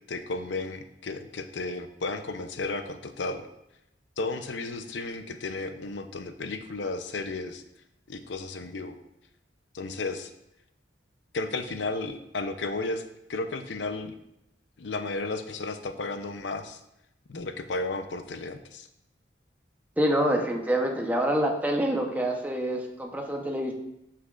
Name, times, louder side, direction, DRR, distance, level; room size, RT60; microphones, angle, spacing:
voice 1, 0.1-3.5 4.2-7.6 8.1-9.0 9.7-10.3 11.3-13.0 13.3-14.1 14.8-16.8 17.3-18.9, left 3 dB, 75° left, 8 dB, 0.6 m, -33 dB
voice 2, 20.0-23.7, right 1 dB, 10° right, 1 dB, 0.9 m, -26 dB
9.5 x 5.9 x 2.5 m, 0.84 s
head